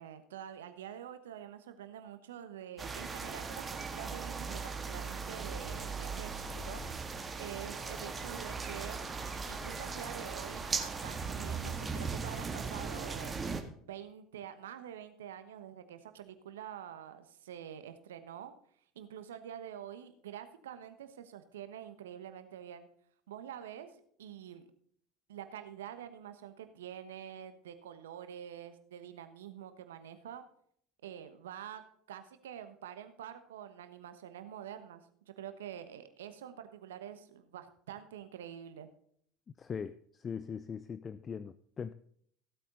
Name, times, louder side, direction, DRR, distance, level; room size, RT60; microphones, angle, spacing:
voice 1, 0.0-6.8 7.4-9.1 9.5-13.3 13.8-18.5 18.9-22.9 23.3-23.9 24.2-24.6 25.3-30.4 31.0-31.8 32.1-35.0 35.4-38.9, right 10 dB, 80° right, 10 dB, 1.2 m, -46 dB
sound 1, 2.8-13.6, right 4 dB, 25° right, 1.7 m, -38 dB
voice 2, 39.6-41.9, left 6 dB, 35° left, 15 dB, 0.5 m, -41 dB
16.0 x 8.4 x 3.9 m, 0.64 s
hypercardioid pair, 70°, 0 cm